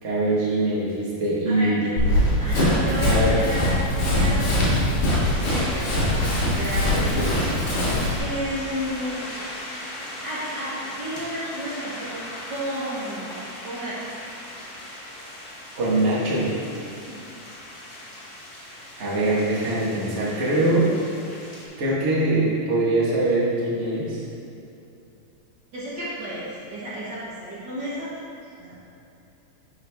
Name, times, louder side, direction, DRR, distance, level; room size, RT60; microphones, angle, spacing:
voice 1, 0.0-1.8 3.1-3.4 6.9-7.3 15.8-16.5 19.0-20.9 21.8-24.2, right 2 dB, 45° right, -7 dB, 0.8 m, -23 dB
voice 2, 1.5-1.9 2.4-3.7 4.0-5.0 5.2-7.4 8.2-9.2 10.2-12.2 12.5-13.3 13.6-14.1 25.7-28.1 28.6-28.7, equal, 85° right, -10 dB, 0.9 m, -32 dB
Run, 2.0-8.2, left 1 dB, 60° left, 3.0 m, -22 dB
sound 1, 5.1-21.7, left 1 dB, 90° left, 0.8 m, -38 dB
11.5 x 4.7 x 3.5 m, 2.7 s
omnidirectional pair, 3.9 m